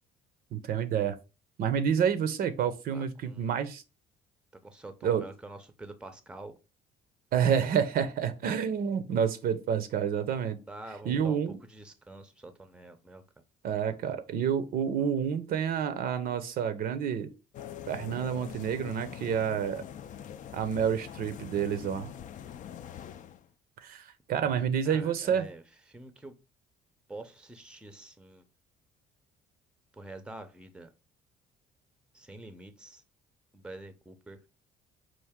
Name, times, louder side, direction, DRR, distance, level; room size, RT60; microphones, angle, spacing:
voice 1, 0.5-1.2 1.6-3.8 5.0-5.2 7.3-10.6 11.1-11.5 13.6-17.3 17.9-19.8 20.5-22.1 23.8-25.5, right 8 dB, 60° right, 0.6 m, -29 dB
voice 2, 2.9-3.6 4.6-6.6 10.7-13.2 24.4-25.6 25.9-26.3 27.1-28.4 29.9-30.9 32.1-33.0 33.5-34.4, right 2 dB, 5° right, 0.6 m, -46 dB
sound 1, 17.5-23.5, left 9 dB, 50° left, 0.4 m, -44 dB
4.6 x 2.5 x 3.5 m
cardioid pair, 110°, 17 cm